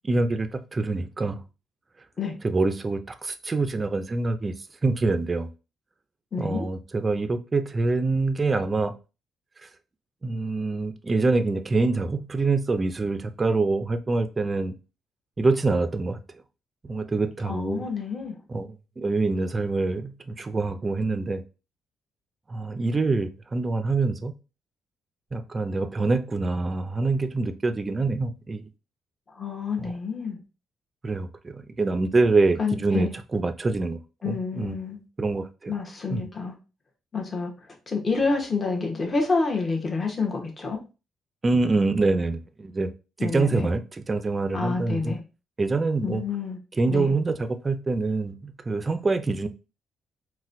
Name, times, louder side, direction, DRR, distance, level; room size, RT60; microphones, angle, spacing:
voice 1, 0.0-1.4 2.4-4.6 4.8-5.5 6.4-8.9 9.6-9.7 10.2-14.7 15.4-16.2 16.8-17.8 18.5-21.4 22.5-24.3 25.3-28.7 29.8-29.9 31.0-34.0 34.3-34.8 35.2-35.7 36.1-36.3 41.4-42.9 43.2-45.1 45.6-46.2 46.8-49.5, right 3 dB, 30° right, 0.4 m, -25 dB
voice 2, 6.3-6.7 17.5-18.4 29.4-30.4 32.6-33.1 34.2-35.0 35.7-36.6 37.1-37.5 37.9-40.8 43.2-43.7 44.5-45.2 46.0-46.6 46.9-47.2, left 4 dB, 35° left, 1.0 m, -28 dB
4.0 x 2.2 x 2.6 m
cardioid pair, 90°, 0 cm